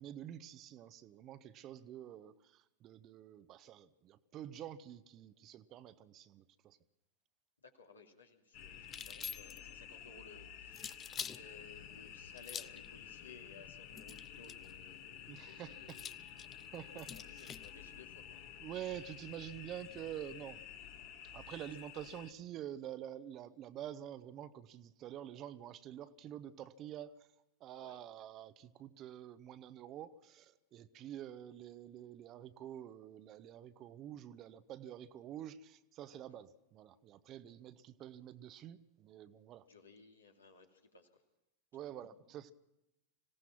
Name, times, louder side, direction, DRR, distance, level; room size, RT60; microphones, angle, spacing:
voice 1, 0.0-6.8 15.3-16.0 16.7-17.5 18.6-20.6 21.3-27.1 27.6-39.6 41.7-42.5, right 11 dB, 35° right, 13 dB, 1.0 m, -48 dB
voice 2, 7.6-11.0 11.3-16.2 16.9-18.4 21.9-22.3 27.7-28.0 36.1-36.4 39.6-41.1, left 4 dB, 75° left, 2 dB, 2.7 m, -59 dB
sound 1, 8.5-22.3, left 9 dB, 45° left, 1.8 m, -52 dB
sound 2, 8.8-9.7 10.7-11.4 12.4-12.9 13.9-14.7 15.9-17.7, left 8 dB, 25° left, 0.6 m, -46 dB
26.0 x 17.0 x 5.9 m, 0.89 s
figure-of-eight pair, 90°, 0 cm